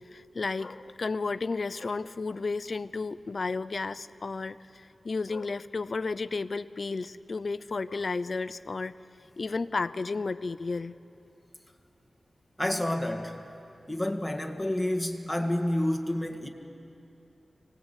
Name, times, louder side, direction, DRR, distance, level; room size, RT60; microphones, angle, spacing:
voice 1, 0.1-8.9 9.4-10.9, left 3 dB, 55° left, 14 dB, 0.6 m, -33 dB
voice 2, 12.6-13.4 13.9-16.5, left 1 dB, 5° left, 3 dB, 1.8 m, -29 dB
25.5 x 19.0 x 8.3 m, 2.8 s
wide cardioid pair, 105°, 0 cm